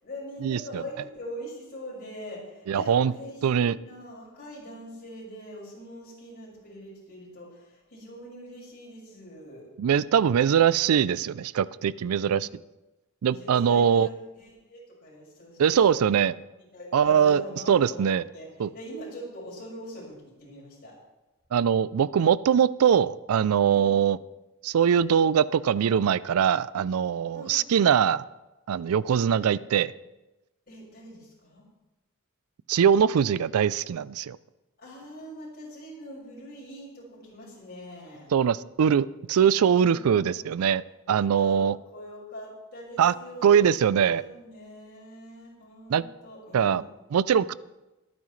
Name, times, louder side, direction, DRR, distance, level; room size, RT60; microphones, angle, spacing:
voice 1, 0.0-9.7 12.2-12.4 13.2-16.2 16.7-18.5 18.7-20.9 23.7-23.9 27.3-27.6 30.7-31.6 34.8-38.3 39.5-40.7 41.4-41.6 41.9-46.8, equal, 45° left, -5 dB, 5.6 m, -43 dB
voice 2, 2.7-3.1 3.4-3.8 9.8-12.5 13.2-14.1 15.6-16.3 16.9-17.4 17.7-18.2 18.6-18.7 21.5-24.2 24.6-28.3 28.7-29.9 32.7-34.4 38.3-40.8 41.1-41.8 43.0-43.1 43.4-44.2 45.9-46.0 46.5-46.8 47.1-47.5, right 8 dB, 90° right, 19 dB, 0.4 m, -22 dB
22.0 x 9.4 x 3.2 m, 1.0 s
head